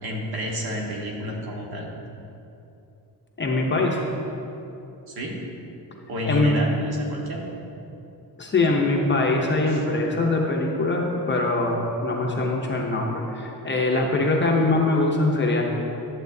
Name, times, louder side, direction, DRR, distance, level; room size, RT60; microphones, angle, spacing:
voice 1, 0.0-1.9 5.1-5.4 6.1-7.4 9.7-9.8, equal, 65° right, -1 dB, 1.5 m, -30 dB
voice 2, 3.4-4.0 6.3-6.5 8.4-15.6, left 2 dB, 25° left, -1 dB, 0.6 m, -22 dB
11.5 x 7.6 x 2.6 m, 2.9 s
wide cardioid pair, 155°, 41 cm